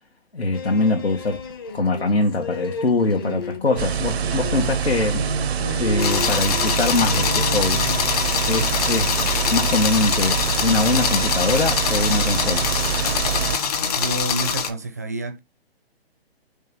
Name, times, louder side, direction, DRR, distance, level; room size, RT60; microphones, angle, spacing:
voice 1, 0.3-1.4 1.7-5.2 5.8-7.8 8.5-9.2 9.5-12.7, left 3 dB, 90° left, 2.0 m, -23 dB
sound 1, 0.5-14.5, left 3 dB, 25° left, 0.6 m, -35 dB
sound 2, 3.8-13.6, right 8 dB, 80° right, 0.6 m, -25 dB
sound 3, 6.0-14.7, left 7 dB, 40° left, 1.3 m, -24 dB
voice 2, 13.9-15.4, right 2 dB, 15° right, 0.4 m, -28 dB
5.5 x 3.7 x 5.5 m
hypercardioid pair, 160°, 31 cm